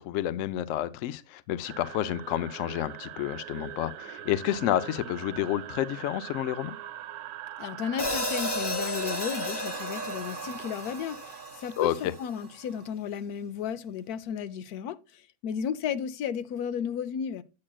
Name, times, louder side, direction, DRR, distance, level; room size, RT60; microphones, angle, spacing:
voice 1, 0.0-6.8 11.8-12.1, left 12 dB, 70° left, 0.8 m, -30 dB
sound 1, 1.6-12.9, right 12 dB, 90° right, 1.1 m, -42 dB
voice 2, 7.6-17.4, left 8 dB, 85° left, 1.1 m, -34 dB
Hi-hat, 8.0-12.2, left 1 dB, 20° left, 0.9 m, -33 dB
8.6 x 8.5 x 2.2 m
omnidirectional pair, 1.6 m